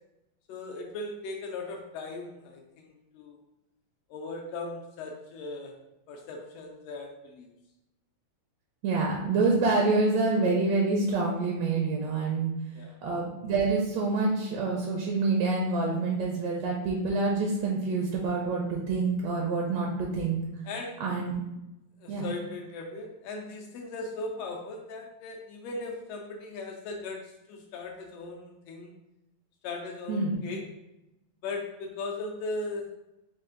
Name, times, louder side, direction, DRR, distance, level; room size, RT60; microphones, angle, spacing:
voice 1, 0.5-3.4 4.1-5.7 6.1-7.5 12.7-13.0 20.7-21.0 22.0-28.9 29.6-30.7 31.4-32.9, left 3 dB, 85° left, 1 dB, 1.5 m, -38 dB
voice 2, 8.8-12.5 13.0-20.4 21.0-21.3 22.1-22.2 30.1-30.3, right 3 dB, 75° right, -1 dB, 1.7 m, -27 dB
5.0 x 2.4 x 3.7 m, 0.93 s
omnidirectional pair, 3.4 m